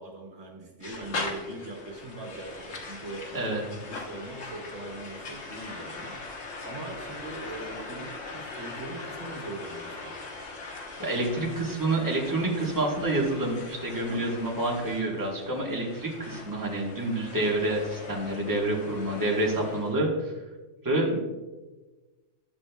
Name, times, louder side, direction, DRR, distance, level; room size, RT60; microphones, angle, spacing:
voice 1, 0.0-3.3 3.7-10.2 14.1-14.3, right 2 dB, 85° right, -1 dB, 1.9 m, -41 dB
sound 1, 0.8-19.9, left 3 dB, 90° left, 1.5 m, -41 dB
voice 2, 3.3-3.6 11.0-20.3 20.8-21.2, right 2 dB, 15° right, -1 dB, 1.2 m, -28 dB
12.0 x 7.2 x 2.3 m, 1.2 s
omnidirectional pair, 1.2 m